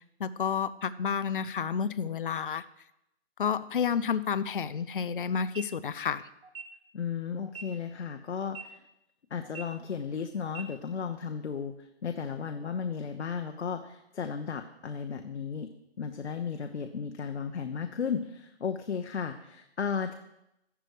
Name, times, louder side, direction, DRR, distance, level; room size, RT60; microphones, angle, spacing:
voice 1, 0.2-2.6 3.4-6.3, left 7 dB, 50° left, 13 dB, 0.6 m, -30 dB
sound 1, 5.4-5.6 6.4-6.6 7.4-7.6 8.4-8.6 9.4-9.6 10.4-10.6, right 6 dB, 60° right, 1.8 m, -42 dB
voice 2, 6.9-8.8 9.3-15.7 16.0-20.1, left 6 dB, 80° left, 6 dB, 1.1 m, -34 dB
12.5 x 11.0 x 5.0 m, 0.85 s
hypercardioid pair, 180°, 33 cm